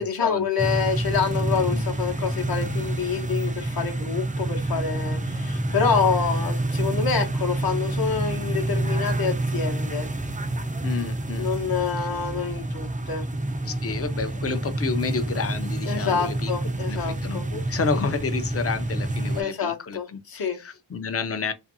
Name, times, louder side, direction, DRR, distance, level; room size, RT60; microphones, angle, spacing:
voice 1, 0.0-10.1 11.4-13.2 15.8-17.5 19.3-20.6, left 6 dB, 45° left, 0.9 m, -27 dB
sound 1, 0.6-19.4, right 1 dB, 15° right, 0.4 m, -28 dB
voice 2, 10.8-11.5 13.6-16.5 16.9-21.5, left 4 dB, 30° left, 0.6 m, -30 dB
2.5 x 2.5 x 2.6 m
cardioid pair, 45°, 49 cm